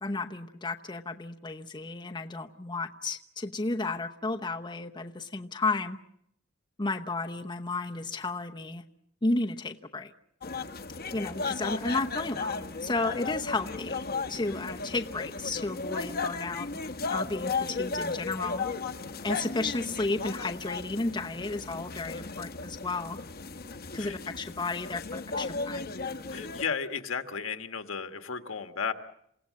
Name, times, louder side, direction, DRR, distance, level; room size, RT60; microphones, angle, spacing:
voice 1, 0.0-6.0 6.8-8.8 9.2-10.1 11.1-14.0 14.3-16.7 17.1-18.6 19.2-23.2 23.9-25.9, left 3 dB, 20° left, 3 dB, 0.9 m, -33 dB
sound 1, 10.4-26.6, left 4 dB, 50° left, 1.1 m, -35 dB
voice 2, 26.3-28.9, left 6 dB, 75° left, 7 dB, 1.6 m, -34 dB
28.0 x 17.5 x 7.6 m, 0.73 s
head